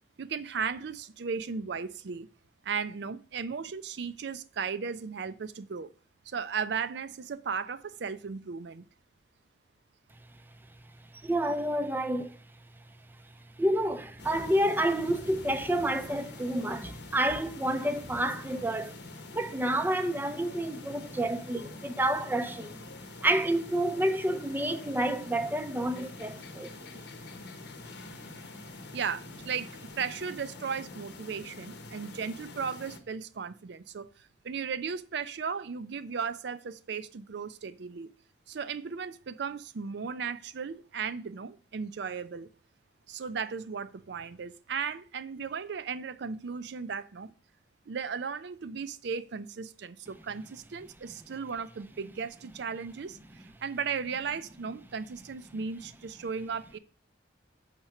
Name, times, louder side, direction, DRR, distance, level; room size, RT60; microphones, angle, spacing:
voice 1, 0.2-2.3 2.6-5.9 6.3-8.8 28.9-38.1 38.5-42.5 43.1-47.3 47.9-56.8, right 6 dB, 60° right, 0.4 m, -36 dB
voice 2, 11.2-12.4 13.6-19.0 19.3-22.8 23.2-26.7, right 1 dB, 10° right, 0.5 m, -29 dB
sound 1, 14.2-33.0, left 3 dB, 65° left, 0.9 m, -46 dB
6.6 x 4.4 x 5.9 m
head